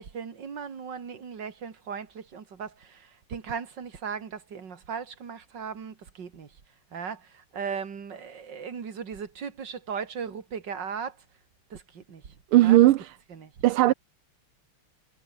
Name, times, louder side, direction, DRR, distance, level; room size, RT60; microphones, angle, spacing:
voice 1, 0.0-6.6 6.9-11.2 11.7-12.9 13.3-13.9, right 6 dB, 55° right, 2.8 m, -38 dB
voice 2, 12.5-13.0 13.6-13.9, right 15 dB, 80° right, 1.6 m, -17 dB
omnidirectional pair, 2.4 m